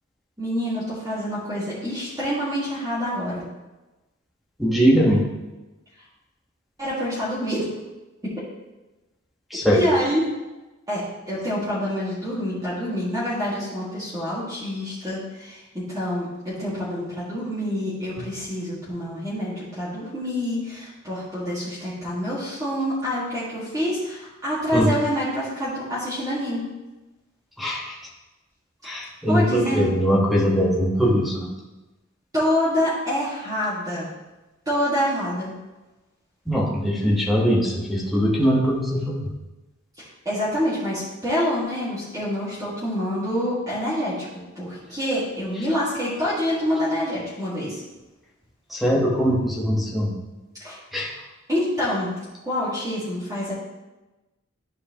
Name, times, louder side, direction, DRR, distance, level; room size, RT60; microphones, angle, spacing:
voice 1, 0.4-3.5 6.8-7.6 8.2-8.3 9.7-10.3 10.9-26.6 29.3-29.9 32.3-34.1 34.7-35.5 40.0-44.3 44.6-47.8 50.6-50.8 51.5-52.2 52.4-53.5, equal, 15° right, -11 dB, 2.0 m, -26 dB
voice 2, 4.6-5.2 9.5-9.8 24.7-24.9 27.6-28.1 28.8-31.5 36.5-39.3 48.7-50.2 50.9-51.1, equal, ahead, -4 dB, 1.3 m, -21 dB
12.0 x 4.8 x 2.9 m, 1.1 s
head